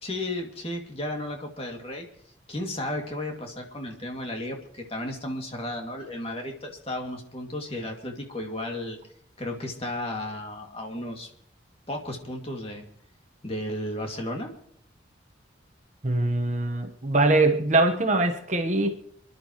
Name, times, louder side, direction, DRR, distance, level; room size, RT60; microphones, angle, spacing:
voice 1, 0.0-2.1 2.5-9.0 9.4-11.3 11.9-12.8 13.4-14.5, left 1 dB, 30° left, 2 dB, 2.3 m, -34 dB
voice 2, 16.0-18.9, right 2 dB, 40° right, 5 dB, 1.1 m, -22 dB
29.0 x 11.5 x 3.0 m, 0.69 s
head